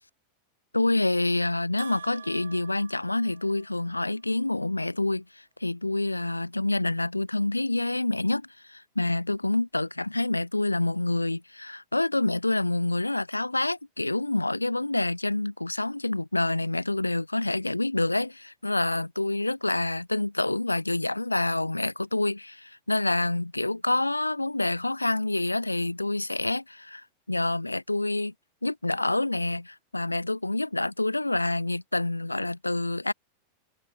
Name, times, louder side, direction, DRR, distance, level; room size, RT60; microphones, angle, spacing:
voice 1, 0.7-28.3 28.6-33.1, left 2 dB, 85° left, 1.2 m, -27 dB
Bell, 1.8-3.9, right 7 dB, 70° right, 4.4 m, -47 dB
figure-of-eight pair, 90°, 0 cm